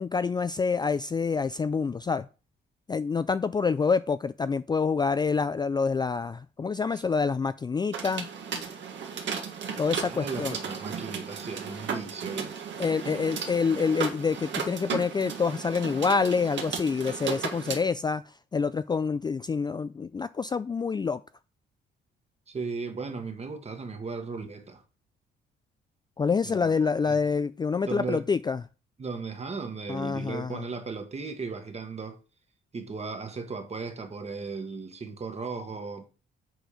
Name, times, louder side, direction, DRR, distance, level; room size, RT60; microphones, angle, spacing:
voice 1, 0.0-2.3 2.9-8.3 9.8-10.5 12.8-18.2 18.5-21.2 26.2-28.6 29.9-30.6, left 5 dB, 20° left, 0.3 m, -27 dB
sound 1, 7.9-17.8, right 6 dB, 65° right, 1.8 m, -35 dB
voice 2, 10.1-12.5 22.5-24.8 26.4-26.7 27.0-27.2 27.9-28.2 29.0-32.2 32.7-36.0, right 4 dB, 35° right, 1.6 m, -36 dB
7.9 x 4.4 x 5.0 m
cardioid pair, 90°, 20 cm